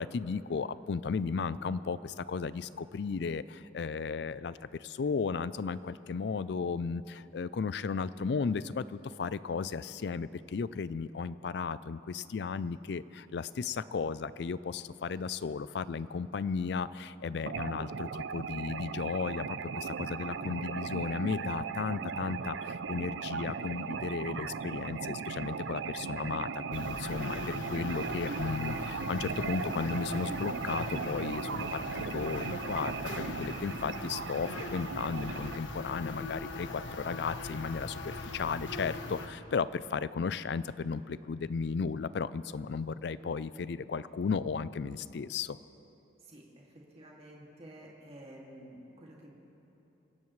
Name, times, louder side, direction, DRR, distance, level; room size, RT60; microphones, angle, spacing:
voice 1, 0.0-45.6, left 5 dB, 60° left, 16 dB, 0.4 m, -35 dB
sound 1, 17.5-35.6, right 5 dB, 75° right, 0.5 m, -38 dB
sound 2, 26.7-39.3, left 2 dB, 85° left, 1.2 m, -41 dB
voice 2, 46.2-46.6 46.9-49.3, right 1 dB, 35° right, -3 dB, 2.3 m, -51 dB
26.0 x 16.5 x 3.2 m, 3.0 s
head